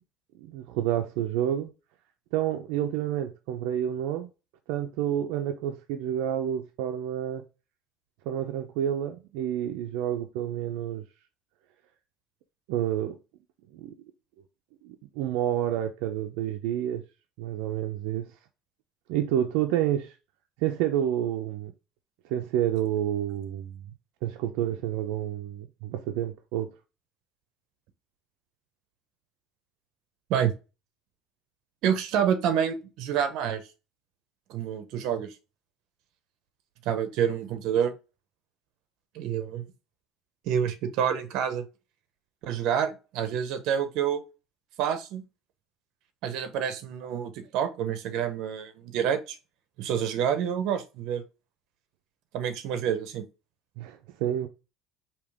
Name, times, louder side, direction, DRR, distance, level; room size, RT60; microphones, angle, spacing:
voice 1, 0.4-1.7 2.3-4.3 4.7-7.4 8.3-11.0 12.7-13.2 13.7-13.9 14.8-17.0 17.4-18.3 19.1-20.1 20.6-21.7 22.3-23.9 24.2-26.7 53.8-54.5, right 11 dB, 80° right, 0.5 m, -29 dB
voice 2, 31.8-33.6 34.5-35.3 36.8-37.9 39.1-39.6 40.5-41.6 42.4-44.2 44.8-45.2 46.2-49.4 49.8-51.2 52.3-53.2, right 8 dB, 60° right, 0.8 m, -28 dB
5.1 x 2.9 x 3.5 m
cardioid pair, 165°, 0 cm